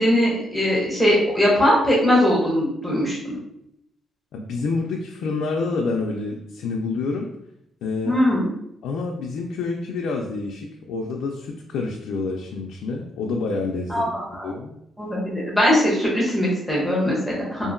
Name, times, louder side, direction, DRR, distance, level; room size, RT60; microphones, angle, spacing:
voice 1, 0.0-3.2 8.0-8.4 13.9-14.5 15.0-17.7, equal, ahead, -6 dB, 0.8 m, -20 dB
voice 2, 4.3-7.3 7.8-8.2 8.8-14.1 14.4-14.7 17.6-17.7, left 3 dB, 80° left, 0 dB, 0.3 m, -28 dB
2.7 x 2.5 x 2.5 m, 0.79 s
cardioid pair, 160°, 0 cm